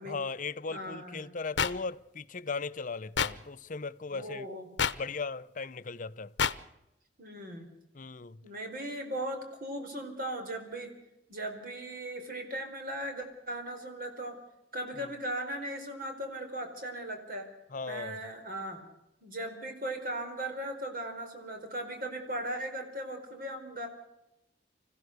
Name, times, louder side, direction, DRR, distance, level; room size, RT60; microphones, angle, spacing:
voice 1, 0.1-4.5 4.8-6.3 7.9-8.4 15.0-15.1 17.7-18.2, left 4 dB, 45° left, 0.7 m, -38 dB
voice 2, 0.7-1.3 4.1-4.7 7.2-7.7 8.4-10.9 11.3-14.4 14.7-17.5 17.8-18.8 19.2-23.9, right 1 dB, 50° right, 4.6 m, -38 dB
sound 1, 1.6-1.7 3.2-3.3 4.8-4.9 6.4-6.5, left 7 dB, 75° left, 0.9 m, -26 dB
25.5 x 16.0 x 6.6 m
head